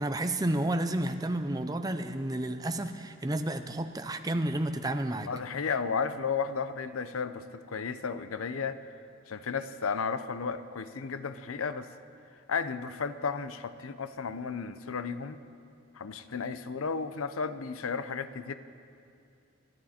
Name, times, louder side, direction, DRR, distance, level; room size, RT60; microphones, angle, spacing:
voice 1, 0.0-5.3, right 1 dB, 20° right, 8 dB, 0.6 m, -31 dB
voice 2, 5.2-8.8 9.3-11.9 12.5-15.4 15.9-18.5, left 5 dB, 90° left, 12 dB, 0.7 m, -33 dB
27.5 x 11.0 x 4.3 m, 2.5 s
head